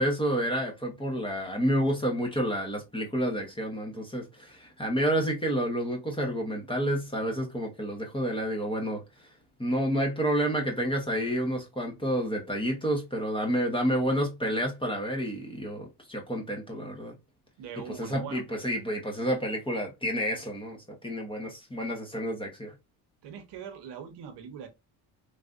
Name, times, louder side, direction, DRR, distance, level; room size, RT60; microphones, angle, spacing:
voice 1, 0.0-9.0 9.6-17.1 18.0-22.7, equal, 10° left, 0.8 m, -29 dB
voice 2, 17.6-18.4 23.2-24.7, right 8 dB, 60° right, 0.9 m, -42 dB
3.3 x 2.5 x 2.4 m
cardioid pair, 100°, 45 cm